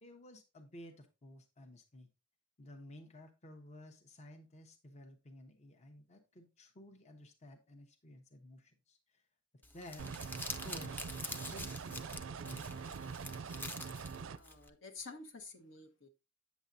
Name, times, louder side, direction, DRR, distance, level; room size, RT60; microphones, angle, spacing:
voice 1, 0.0-2.1 2.6-9.2 9.7-10.1 10.6-11.0 11.5-13.0, left 1 dB, 35° left, 0.8 m, -54 dB
Crumpling crinkling, 9.6-14.7, left 2 dB, 10° left, 0.5 m, -46 dB
sound 1, 10.0-14.4, right 5 dB, 75° right, 0.4 m, -44 dB
voice 2, 14.4-16.1, left 3 dB, 70° left, 1.2 m, -50 dB
8.2 x 7.1 x 2.6 m
head